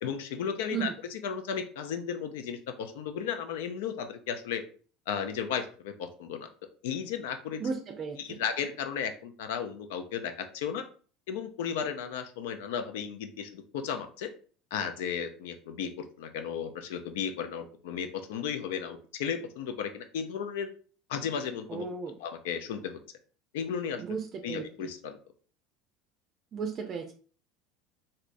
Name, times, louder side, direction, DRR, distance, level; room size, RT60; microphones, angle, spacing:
voice 1, 0.0-4.6 5.1-6.5 6.8-7.6 8.2-10.8 11.3-14.3 14.7-20.7 21.1-21.9 22.2-23.0 23.5-24.0 24.4-25.2, left 7 dB, 80° left, 8 dB, 0.5 m, -34 dB
voice 2, 7.6-8.4 21.7-22.1 24.0-24.9 26.5-27.1, right 6 dB, 40° right, 3 dB, 0.4 m, -35 dB
3.2 x 2.7 x 2.5 m, 0.41 s
supercardioid pair, 105°, 0 cm